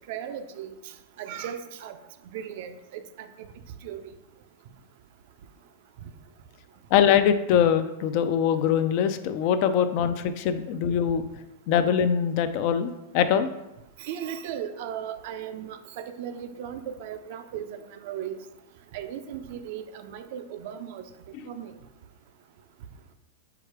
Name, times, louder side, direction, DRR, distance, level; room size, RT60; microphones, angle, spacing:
voice 1, 0.1-0.7 1.2-2.0 2.3-3.3 3.8-4.0 9.7-9.8 14.0-18.4 18.9-21.0 21.5-21.7, right 9 dB, 60° right, 9 dB, 0.4 m, -36 dB
voice 2, 6.9-11.2 11.7-13.5 21.3-21.4, left 8 dB, 50° left, 10 dB, 0.4 m, -23 dB
4.7 x 2.4 x 4.6 m, 0.93 s
hypercardioid pair, 125°, 0 cm